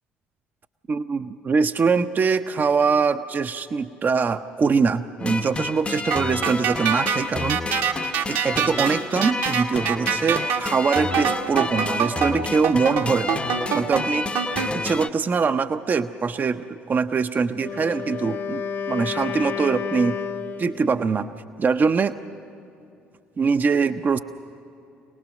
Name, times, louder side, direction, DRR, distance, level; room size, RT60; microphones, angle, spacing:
voice 1, 0.9-7.6 8.3-13.4 13.7-14.3 14.7-18.6 18.9-20.2 20.6-21.3 21.6-22.2 23.4-24.2, right 5 dB, 35° right, 10 dB, 0.6 m, -23 dB
sound 1, 5.2-15.1, left 3 dB, 20° left, 0.8 m, -30 dB
sound 2, 6.1-14.7, right 7 dB, 65° right, 1.4 m, -25 dB
Wind instrument woodwind instrument, 17.5-21.0, left 7 dB, 50° left, 1.1 m, -31 dB
26.0 x 19.0 x 6.4 m, 2.7 s
figure-of-eight pair, 55°, 5 cm